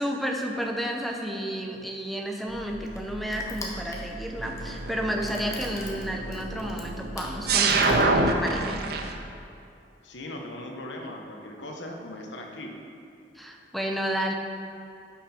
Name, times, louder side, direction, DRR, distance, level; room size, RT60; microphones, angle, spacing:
voice 1, 0.0-8.8 13.3-14.3, equal, ahead, 1 dB, 0.7 m, -31 dB
Crushing, 1.8-8.6, left 2 dB, 20° left, 1.1 m, -44 dB
sound 1, 2.5-9.1, right 3 dB, 60° right, 0.7 m, -28 dB
voice 2, 10.0-12.7, left 1 dB, 85° left, 1 dB, 1.2 m, -39 dB
11.5 x 5.9 x 4.4 m, 2.6 s
head